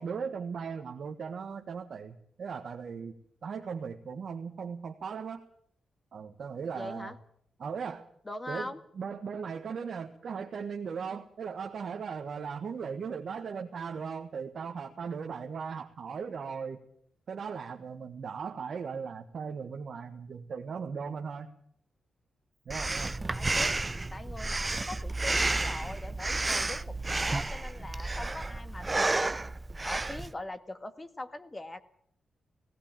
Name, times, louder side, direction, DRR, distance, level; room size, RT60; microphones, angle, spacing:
voice 1, 0.0-3.1 3.4-5.4 6.1-7.1 7.6-8.1 8.5-16.8 17.3-21.5 22.6-23.1, right 6 dB, 65° right, 3 dB, 1.6 m, -38 dB
voice 2, 6.7-7.2 8.2-8.8 23.3-23.7 24.1-29.3 29.8-31.8, left 2 dB, 25° left, 10 dB, 1.8 m, -41 dB
Breathing, 22.7-30.3, right 2 dB, 25° right, 0.7 m, -31 dB
17.0 x 17.0 x 9.0 m, 0.67 s
cardioid pair, 80°, 0 cm